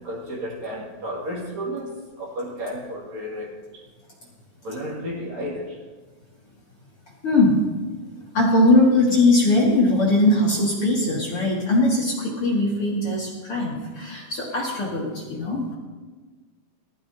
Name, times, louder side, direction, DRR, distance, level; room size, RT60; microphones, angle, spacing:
voice 1, 0.0-3.8 4.6-5.8, equal, 50° right, -4 dB, 3.5 m, -32 dB
voice 2, 7.2-7.6 8.3-15.7, left 2 dB, 40° left, -5 dB, 2.4 m, -20 dB
19.5 x 13.5 x 2.9 m, 1.4 s
omnidirectional pair, 4.4 m